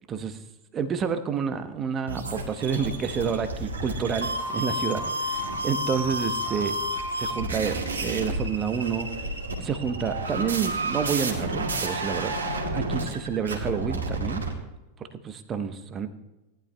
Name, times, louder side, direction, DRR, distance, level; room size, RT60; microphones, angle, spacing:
voice 1, 0.1-0.4 0.7-6.7 7.2-9.1 9.6-14.4 15.2-16.1, right 7 dB, 25° right, 10 dB, 1.0 m, -29 dB
sound 1, 2.1-14.5, right 1 dB, 70° right, 2.1 m, -30 dB
18.5 x 11.5 x 2.3 m, 1.0 s
figure-of-eight pair, 90°, 0 cm